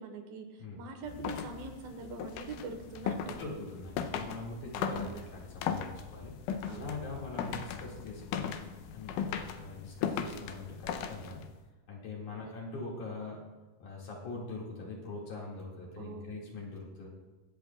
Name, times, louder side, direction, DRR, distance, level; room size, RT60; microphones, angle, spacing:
voice 1, 0.0-3.5 5.0-5.2 6.6-6.9 12.4-12.6 16.0-16.4, right 4 dB, 80° right, 4 dB, 2.9 m, -44 dB
sound 1, 1.0-11.6, left 7 dB, 85° left, 1.9 m, -38 dB
voice 2, 3.3-6.3 6.7-8.6 8.9-11.4 11.9-13.4 13.8-17.1, left 3 dB, 60° left, -4 dB, 3.3 m, -42 dB
23.5 x 7.9 x 2.3 m, 1.2 s
omnidirectional pair, 4.2 m